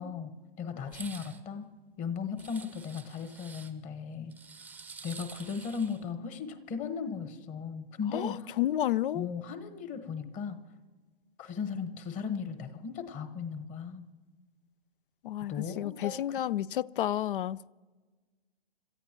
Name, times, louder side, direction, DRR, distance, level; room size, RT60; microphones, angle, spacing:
voice 1, 0.0-1.6 2.0-4.3 5.0-8.5 9.1-10.6 11.4-14.1 15.5-16.4, left 6 dB, 25° left, 1.3 m, -37 dB
sound 1, 0.9-1.4 2.4-3.7 4.3-6.0, right 5 dB, 5° right, 0.7 m, -48 dB
voice 2, 8.1-9.3 15.2-17.6, left 12 dB, 60° left, 0.5 m, -31 dB
27.0 x 14.0 x 3.0 m
hypercardioid pair, 120°, 31 cm